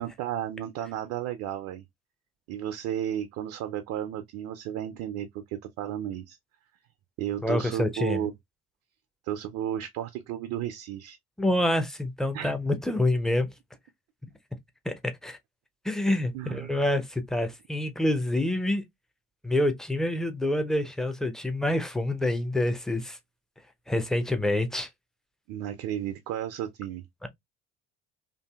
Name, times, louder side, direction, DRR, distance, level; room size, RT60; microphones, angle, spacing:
voice 1, 0.0-1.8 2.5-6.4 7.2-8.3 9.2-11.2 12.3-12.5 16.3-16.7 25.5-27.0, right 11 dB, 60° right, 0.4 m, -33 dB
voice 2, 7.4-8.2 11.4-13.5 14.9-15.4 15.8-18.8 19.4-23.2 23.9-24.9 27.2-27.3, left 1 dB, ahead, 0.5 m, -27 dB
2.6 x 2.5 x 2.2 m
hypercardioid pair, 55°, 35 cm